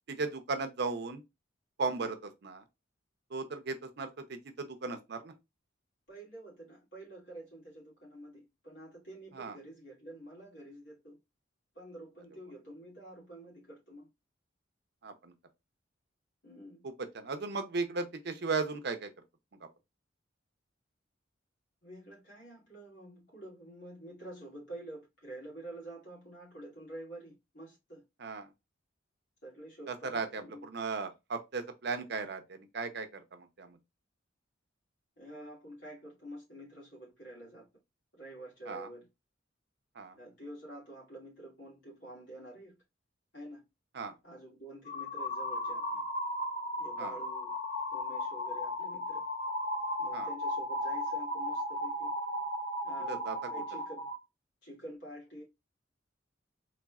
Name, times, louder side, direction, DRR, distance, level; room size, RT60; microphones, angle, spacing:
voice 1, 0.1-1.2 1.8-2.6 3.3-5.3 9.3-9.6 15.0-15.3 16.8-19.1 28.2-28.5 29.9-33.8 38.7-38.9 39.9-40.2 43.9-44.1 47.0-47.2 50.1-50.3 53.1-53.5, right 4 dB, 60° right, 0.6 m, -36 dB
voice 2, 6.1-11.2 11.7-14.1 16.4-16.9 21.8-28.0 29.4-30.7 35.2-37.7 38.1-39.1 40.2-42.8 43.3-43.6 44.2-46.0 46.8-47.5 47.9-49.2 50.0-52.1 52.8-54.1 54.6-55.4, right 1 dB, 65° left, 2.6 m, -48 dB
sound 1, 44.9-54.2, left 1 dB, 45° left, 0.9 m, -35 dB
4.1 x 3.2 x 2.3 m
head